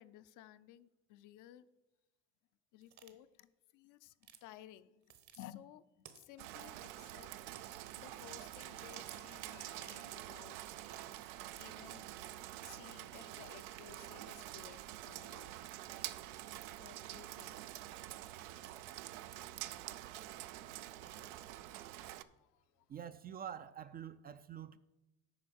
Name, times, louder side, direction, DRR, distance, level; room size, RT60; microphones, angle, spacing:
voice 1, 0.0-1.7 2.7-5.0 5.3-7.3 7.6-10.6 11.6-12.1 12.6-15.7 16.8-17.6 17.9-18.1 20.7-21.6 22.1-22.9, left 12 dB, 60° left, 0.6 m, -57 dB
sound 1, 2.8-3.1 4.2-4.4 5.0-5.4 6.0-6.4 7.5-8.1 8.6-9.3 9.8-10.3 10.6-11.3 11.8-12.5 13.4-13.6 14.5-14.7 15.3-15.6 16.3-16.8 17.3-17.8 18.4-19.1 19.7-20.4 20.8-21.7, right 9 dB, 55° right, 1.2 m, -60 dB
Rain, 6.4-22.2, right 14 dB, 80° right, 0.5 m, -47 dB
voice 2, 22.9-24.8, right 9 dB, 30° right, 0.4 m, -46 dB
8.7 x 5.1 x 6.4 m
supercardioid pair, 95°, 35 cm